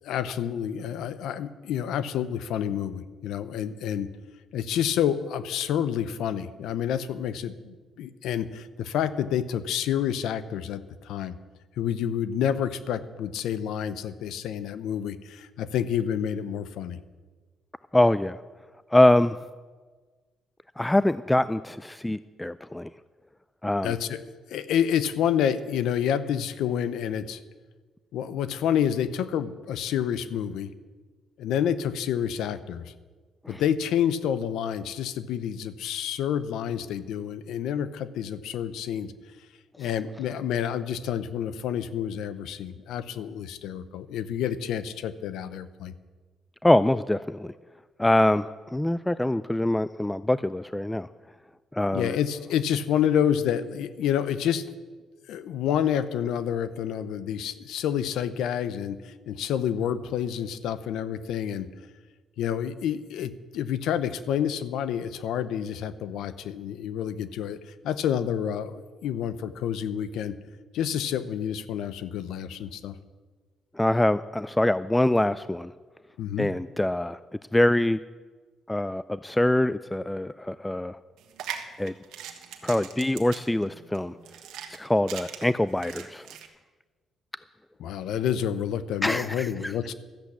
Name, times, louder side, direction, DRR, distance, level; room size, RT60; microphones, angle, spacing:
voice 1, 0.0-4.1 4.5-11.3 11.8-17.0 23.8-27.4 28.1-30.7 31.4-32.9 33.5-39.1 39.8-45.9 51.9-54.7 55.3-61.7 62.4-67.6 67.8-70.4 70.7-73.0 76.2-76.5 87.8-89.9, left 9 dB, 85° left, 13 dB, 0.7 m, -28 dB
voice 2, 17.9-18.4 18.9-19.4 20.8-22.9 23.6-23.9 33.5-33.6 46.6-47.5 48.0-51.1 51.7-52.2 73.8-75.7 76.4-77.2 77.5-78.0 78.7-81.0 81.8-81.9 82.6-84.1 84.7-86.3 89.0-89.7, left 1 dB, 10° left, 15 dB, 0.3 m, -24 dB
sound 1, 81.2-86.5, right 9 dB, 90° right, 1.4 m, -40 dB
13.5 x 8.1 x 8.5 m, 1.4 s
cardioid pair, 90°, 0 cm